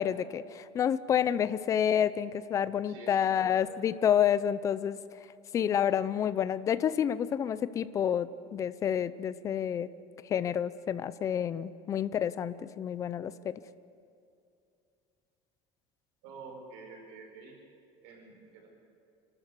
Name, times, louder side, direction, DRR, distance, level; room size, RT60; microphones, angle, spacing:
voice 1, 0.0-5.0 5.5-9.9 10.3-13.5, left 9 dB, 25° left, 14 dB, 0.6 m, -29 dB
voice 2, 2.9-3.8 16.2-17.6 18.0-18.7, right 4 dB, 80° right, 1 dB, 5.3 m, -48 dB
28.5 x 13.0 x 8.3 m, 2.5 s
cardioid pair, 170°, 12 cm